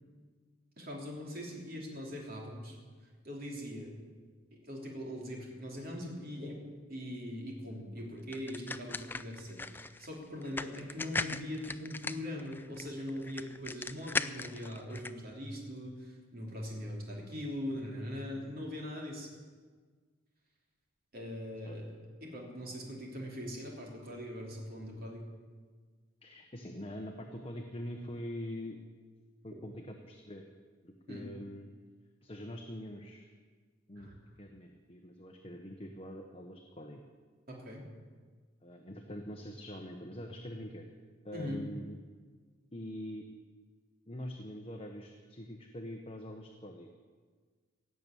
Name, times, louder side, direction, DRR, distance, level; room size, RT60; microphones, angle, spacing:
voice 1, 0.8-2.8 3.2-3.9 4.5-6.6 6.9-19.3 21.1-21.9 22.2-25.2 31.1-31.3 34.0-34.2 37.5-37.8 41.3-41.6, left 1 dB, 50° right, -1 dB, 3.2 m, -41 dB
sound 1, 8.3-15.1, left 3 dB, 10° left, 0.3 m, -39 dB
voice 2, 26.2-28.8 29.4-30.4 30.8-31.7 32.2-33.3 33.9-34.1 34.4-37.0 38.6-40.8 41.2-42.0 42.7-43.2 44.1-46.9, equal, 30° left, 3 dB, 1.0 m, -44 dB
17.0 x 7.0 x 8.9 m, 1.5 s
head